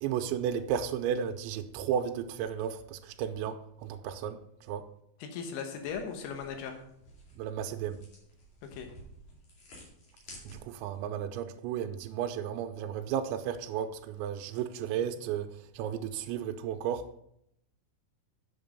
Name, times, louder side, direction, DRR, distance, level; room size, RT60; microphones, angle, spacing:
voice 1, 0.0-4.9 7.4-8.0 10.5-15.5 15.7-17.1, right 9 dB, 80° right, 2.7 m, -33 dB
voice 2, 5.2-6.8 8.6-8.9, left 6 dB, 80° left, 3.5 m, -38 dB
sound 1, 5.7-11.0, equal, 45° left, 3.0 m, -53 dB
7.7 x 7.3 x 5.2 m
omnidirectional pair, 5.7 m